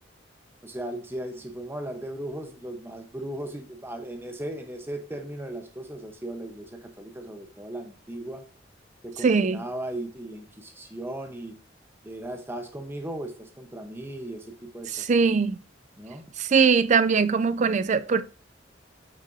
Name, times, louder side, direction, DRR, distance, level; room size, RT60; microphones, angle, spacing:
voice 1, 0.6-8.4 9.0-11.6 12.0-15.1 16.0-16.3, right 1 dB, 15° right, 1.0 m, -37 dB
voice 2, 9.2-9.6 14.9-15.6 16.4-18.2, right 5 dB, 40° right, 0.4 m, -21 dB
8.3 x 6.2 x 2.7 m
head